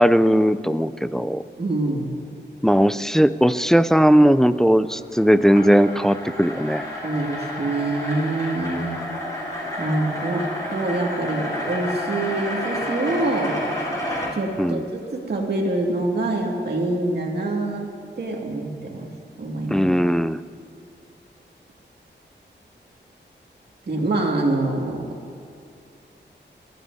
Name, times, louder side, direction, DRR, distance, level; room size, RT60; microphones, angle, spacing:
voice 1, 0.0-1.4 2.6-6.8 14.6-14.8 19.7-20.4, equal, ahead, 13 dB, 0.3 m, -18 dB
voice 2, 1.6-2.1 7.0-8.9 9.8-13.5 14.3-17.9 18.2-19.1 19.4-19.9 23.9-25.0, right 2 dB, 60° right, -1 dB, 2.1 m, -25 dB
sound 1, 4.8-14.3, left 1 dB, 20° left, 3.8 m, -30 dB
28.5 x 12.5 x 2.7 m, 2.3 s
wide cardioid pair, 135°, 19 cm